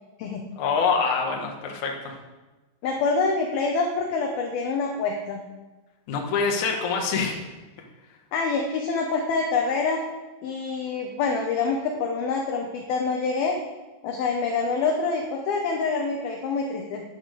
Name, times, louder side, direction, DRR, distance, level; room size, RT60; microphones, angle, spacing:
voice 1, 0.6-2.1 6.1-7.4, left 5 dB, 55° left, 1 dB, 2.5 m, -25 dB
voice 2, 2.8-5.4 8.3-10.0 10.4-13.6 14.0-17.0, left 4 dB, 70° left, 2 dB, 2.6 m, -26 dB
10.0 x 10.0 x 6.5 m, 1.2 s
omnidirectional pair, 5.0 m